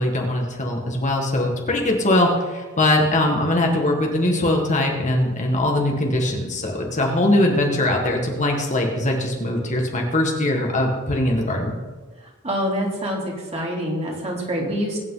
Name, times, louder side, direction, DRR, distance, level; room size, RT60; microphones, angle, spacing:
voice 1, 0.0-11.7, left 1 dB, 35° left, 1 dB, 1.8 m, -21 dB
voice 2, 12.4-15.0, equal, 30° right, -2 dB, 3.1 m, -26 dB
21.0 x 9.1 x 4.0 m, 1.3 s
head